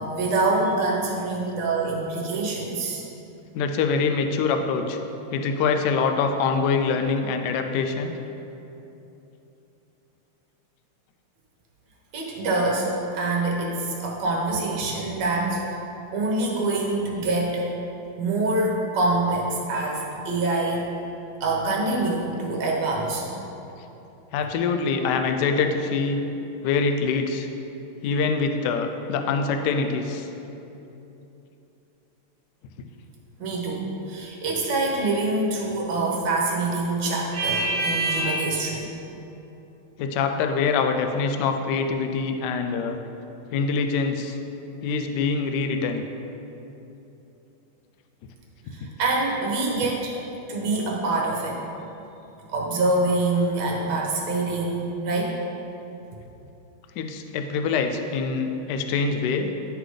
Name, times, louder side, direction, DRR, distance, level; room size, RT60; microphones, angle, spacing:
voice 1, 0.0-3.0 12.1-15.8 16.1-17.7 18.2-20.9 21.4-23.2 33.4-38.9 48.7-51.6 52.5-55.4, right 2 dB, 60° right, -2 dB, 1.5 m, -25 dB
voice 2, 3.5-5.0 5.3-8.1 24.3-26.2 26.6-27.5 28.0-30.3 40.0-43.0 43.5-44.4 44.8-46.0 57.0-59.5, left 5 dB, 85° left, 6 dB, 0.9 m, -24 dB
11.0 x 3.9 x 3.2 m, 3.0 s
omnidirectional pair, 2.3 m